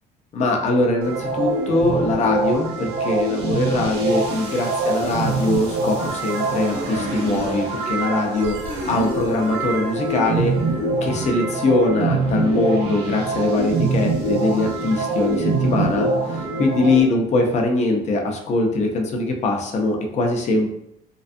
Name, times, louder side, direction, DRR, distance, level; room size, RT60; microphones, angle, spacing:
voice 1, 0.3-8.5 8.9-10.5 11.0-20.8, left 2 dB, 40° left, 2 dB, 0.5 m, -22 dB
sound 1, 1.0-17.0, right 3 dB, 85° right, 0.8 m, -24 dB
2.5 x 2.3 x 2.5 m, 0.81 s
cardioid pair, 110°, 17 cm